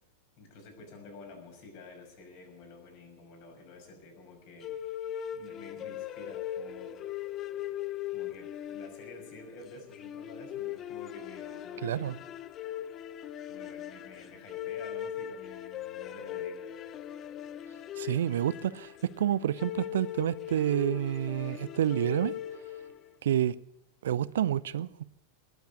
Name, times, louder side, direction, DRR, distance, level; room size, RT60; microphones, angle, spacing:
voice 1, 0.4-4.8 5.3-7.0 8.1-12.3 13.5-17.0, left 2 dB, 45° left, 5.8 m, -50 dB
sound 1, 4.6-23.1, left 11 dB, 30° left, 0.7 m, -40 dB
voice 2, 11.8-12.2 17.9-22.3 23.2-23.6 24.0-25.0, right 11 dB, 60° right, 0.5 m, -29 dB
20.0 x 8.1 x 8.3 m
figure-of-eight pair, 90°, 0 cm